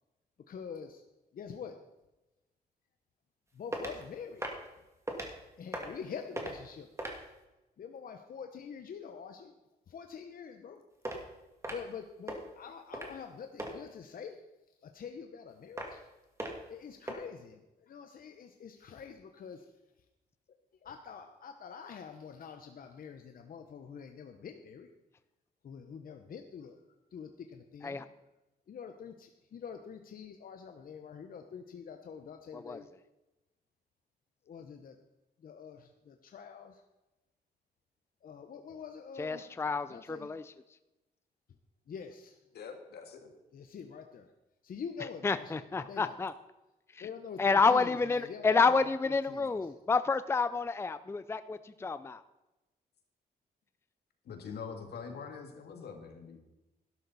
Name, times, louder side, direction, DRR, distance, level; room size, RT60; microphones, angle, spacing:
voice 1, 0.5-1.0 1.3-1.8 3.5-4.5 5.6-6.9 7.8-9.5 9.9-10.8 11.7-14.4 14.8-16.0 16.7-19.7 20.8-24.9 25.6-26.8 27.1-28.0 28.7-32.9 34.5-35.0 35.4-36.8 38.2-39.5 39.9-40.3 41.9-42.4 43.5-44.3 44.6-46.2 47.0-49.5, left 6 dB, 60° left, 6 dB, 0.9 m, -46 dB
sound 1, 3.7-4.0 4.4-4.7 5.1-5.3 5.7-6.1 6.4-6.6 7.0-7.3 11.0-11.2 11.6-11.9 12.3-12.4 12.9-13.2 13.6-13.7 15.8-16.0 16.4-16.7 17.1-17.2, right 1 dB, 15° right, 2.2 m, -38 dB
voice 2, 39.2-40.5 45.2-46.3 46.9-47.1 47.4-52.2, left 4 dB, 15° left, 13 dB, 0.4 m, -29 dB
voice 3, 42.5-43.3 54.3-56.4, left 6 dB, 80° left, 5 dB, 1.9 m, -44 dB
12.0 x 11.5 x 4.1 m, 1.0 s
cardioid pair, 95°, 17 cm